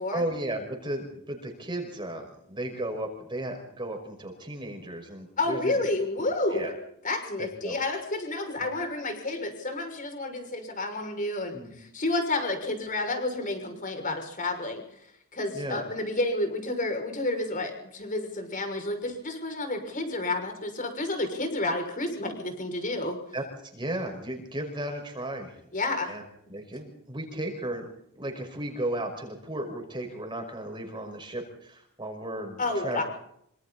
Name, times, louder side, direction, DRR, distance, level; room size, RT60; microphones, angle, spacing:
voice 1, 0.1-5.8 6.5-6.7 7.4-7.8 8.6-8.7 11.5-11.8 15.5-15.8 23.3-25.6 26.1-26.2 26.5-27.9 28.2-33.0, right 1 dB, 20° right, 3 dB, 5.5 m, -35 dB
voice 2, 5.4-6.8 7.0-14.8 15.3-23.2 25.7-26.2 32.6-33.0, left 2 dB, 35° left, 5 dB, 6.3 m, -30 dB
27.0 x 26.0 x 4.2 m, 0.73 s
head